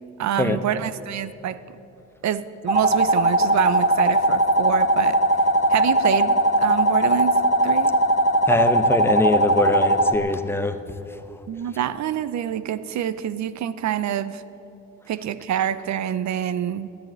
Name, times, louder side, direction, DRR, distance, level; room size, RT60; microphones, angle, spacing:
voice 1, 0.2-1.6 2.2-5.2 5.7-7.9 11.5-14.4 15.1-16.9, right 10 dB, 65° right, 15 dB, 0.8 m, -26 dB
sound 1, 2.7-10.1, right 1 dB, 20° right, 1.5 m, -19 dB
voice 2, 8.5-10.8, left 2 dB, 10° left, 8 dB, 1.0 m, -22 dB
13.5 x 10.5 x 9.4 m, 3.0 s
cardioid pair, 90°, 30 cm